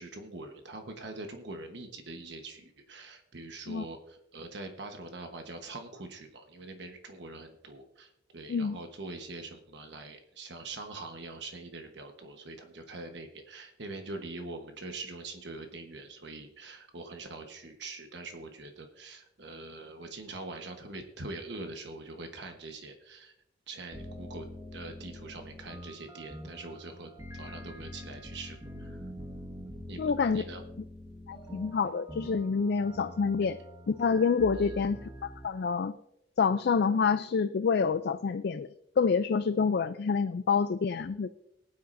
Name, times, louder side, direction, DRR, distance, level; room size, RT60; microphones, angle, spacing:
voice 1, 0.0-23.3 23.7-29.0 29.9-30.6 34.5-34.7, right 2 dB, 65° right, 5 dB, 1.2 m, -43 dB
sound 1, 23.9-35.5, equal, 20° right, 1.6 m, -45 dB
voice 2, 30.0-30.4 31.3-33.6 33.9-36.0 36.4-38.7 39.0-41.3, left 5 dB, 55° left, 11 dB, 0.4 m, -27 dB
20.0 x 9.4 x 2.6 m, 0.82 s
head